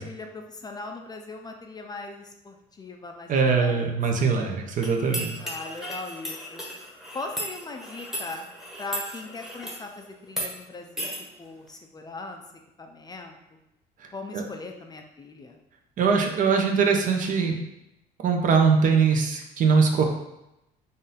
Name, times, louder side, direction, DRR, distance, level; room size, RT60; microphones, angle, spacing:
voice 1, 0.0-3.9 4.2-4.4 5.4-6.6 7.1-8.5 8.8-11.1 11.4-12.4 12.8-13.4 14.1-15.6, left 3 dB, 25° left, 3 dB, 0.4 m, -39 dB
voice 2, 3.3-5.4 14.3-14.4 16.0-17.6 18.2-20.0, right 5 dB, 50° right, 2 dB, 0.7 m, -22 dB
sound 1, 4.8-9.8 10.3-10.5 11.0-11.2, equal, ahead, 1.0 m, -35 dB
3.8 x 2.6 x 4.0 m, 0.88 s
cardioid pair, 110°, 17 cm